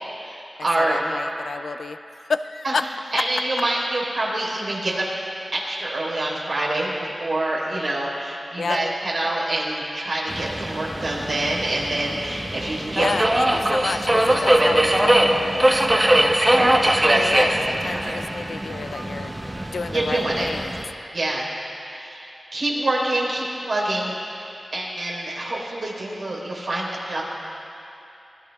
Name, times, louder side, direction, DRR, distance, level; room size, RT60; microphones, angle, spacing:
voice 1, 0.2-1.0 2.6-5.0 5.5-13.1 16.5-18.2 19.9-20.5 21.1-21.5 21.8-27.2, right 1 dB, 75° right, -4 dB, 4.2 m, -26 dB
voice 2, 0.8-2.0 2.3-2.8 8.6-8.8 13.0-15.7 17.1-19.3 19.7-20.7, left 4 dB, 90° left, 11 dB, 0.4 m, -30 dB
Subway metro underground, 10.3-20.8, right 1 dB, 25° right, 1.1 m, -21 dB
24.0 x 19.5 x 2.4 m, 2.8 s
wide cardioid pair, 85°, 0 cm